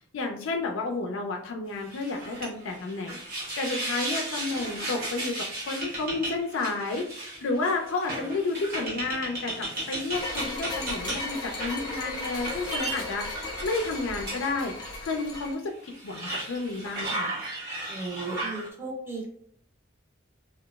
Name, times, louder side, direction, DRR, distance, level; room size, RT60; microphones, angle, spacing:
voice 1, 0.1-13.4 13.6-14.7 15.0-17.3, left 3 dB, 75° left, 2 dB, 0.4 m, -31 dB
sound 1, 1.8-15.0 15.3-15.4 15.9-18.7, right 1 dB, 50° right, 0.9 m, -35 dB
sound 2, 10.1-15.5, left 2 dB, 20° left, 0.7 m, -36 dB
voice 2, 17.9-19.3, right 3 dB, 10° right, -2 dB, 0.7 m, -35 dB
2.9 x 2.3 x 2.2 m, 0.64 s
head